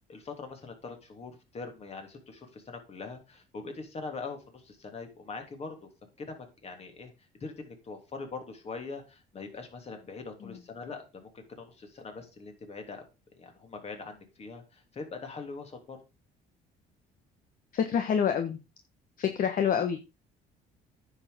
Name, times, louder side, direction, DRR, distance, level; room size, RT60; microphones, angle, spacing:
voice 1, 0.1-5.9 6.2-7.1 7.4-13.0 13.3-16.0, left 4 dB, 40° left, 5 dB, 3.2 m, -42 dB
voice 2, 17.7-18.6 19.2-20.0, left 8 dB, 55° left, 7 dB, 1.3 m, -27 dB
9.7 x 6.6 x 5.1 m, 0.28 s
cardioid pair, 110°, 17 cm